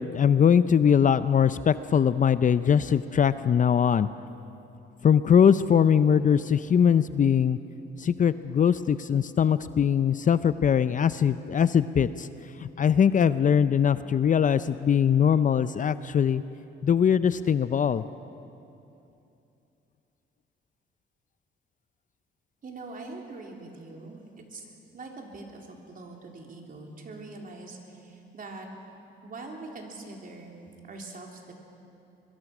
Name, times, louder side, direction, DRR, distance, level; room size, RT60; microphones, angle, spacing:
voice 1, 0.0-4.1 5.0-7.6 8.0-12.3 12.6-16.4 16.8-18.0, left 8 dB, 40° left, 14 dB, 0.6 m, -21 dB
voice 2, 22.6-24.7 24.9-28.7 29.2-30.6 30.9-31.5, right 3 dB, 45° right, 1 dB, 3.7 m, -43 dB
23.0 x 22.5 x 6.1 m, 2.8 s
cardioid pair, 90°, 20 cm